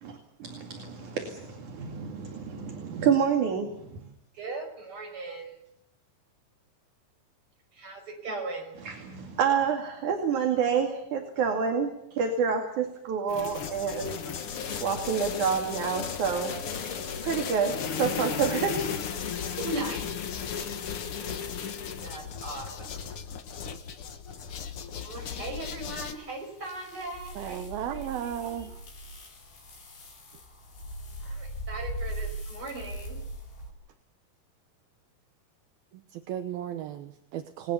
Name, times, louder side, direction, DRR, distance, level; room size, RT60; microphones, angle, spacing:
voice 1, 0.0-4.1 8.9-14.2 14.8-16.5 17.2-18.8, right 6 dB, 55° right, 3 dB, 3.6 m, -28 dB
voice 2, 4.3-5.6 7.7-8.8 19.5-20.1 22.0-23.0 25.0-28.7 31.2-33.2, right 2 dB, 30° right, 3 dB, 6.5 m, -38 dB
sound 1, 13.3-26.1, left 7 dB, 65° left, 1.4 m, -35 dB
sound 2, 25.8-33.7, right 1 dB, 85° left, 8.2 m, -40 dB
voice 3, 27.4-28.8 35.9-37.7, right 10 dB, 75° right, 7 dB, 2.9 m, -35 dB
29.0 x 20.0 x 7.1 m, 0.74 s
omnidirectional pair, 4.6 m